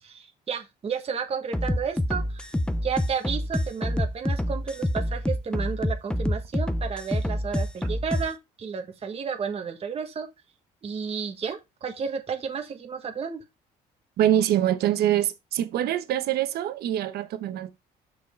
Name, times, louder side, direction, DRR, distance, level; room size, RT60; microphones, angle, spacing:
voice 1, 0.0-2.5 2.8-10.3 10.8-13.4, right 6 dB, 35° right, 1.4 m, -32 dB
sound 1, 1.5-8.3, left 1 dB, 5° left, 0.7 m, -27 dB
voice 2, 14.2-17.7, right 11 dB, 70° right, 1.1 m, -24 dB
6.3 x 5.3 x 4.5 m
cardioid pair, 110°, 17 cm